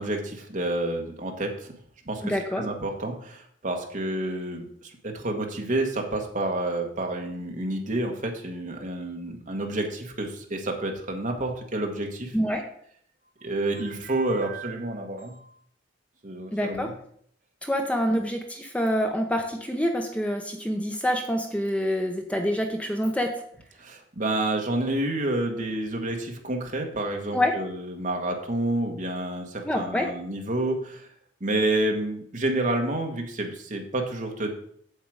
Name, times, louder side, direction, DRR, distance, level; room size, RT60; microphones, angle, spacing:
voice 1, 0.0-1.7 2.0-12.3 13.4-15.4 16.2-16.9 18.1-18.2 23.8-31.1 31.4-34.5, right 1 dB, 45° right, 3 dB, 1.4 m, -29 dB
voice 2, 2.2-2.6 12.3-12.6 16.5-16.9 17.6-23.3 27.3-27.5 29.6-30.1, equal, 5° left, 3 dB, 0.8 m, -26 dB
8.2 x 7.5 x 4.8 m, 0.65 s
head